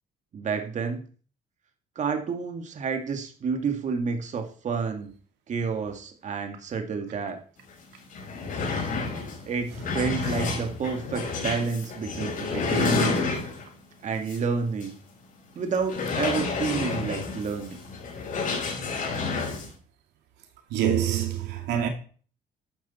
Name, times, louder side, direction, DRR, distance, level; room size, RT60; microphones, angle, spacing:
voice 1, 0.3-1.0 2.0-5.1 5.5-7.4 9.5-13.2 14.0-14.9 15.6-17.8, right 5 dB, 45° right, 2.2 m, -30 dB
sound 1, 7.7-7.8 8.1-13.8 14.3-14.4 14.8-14.9 15.8-19.7, left 4 dB, 50° left, 5.6 m, -29 dB
voice 2, 20.7-21.9, right 9 dB, 90° right, 2.4 m, -25 dB
13.0 x 9.9 x 4.4 m
cardioid pair, 110°, 17 cm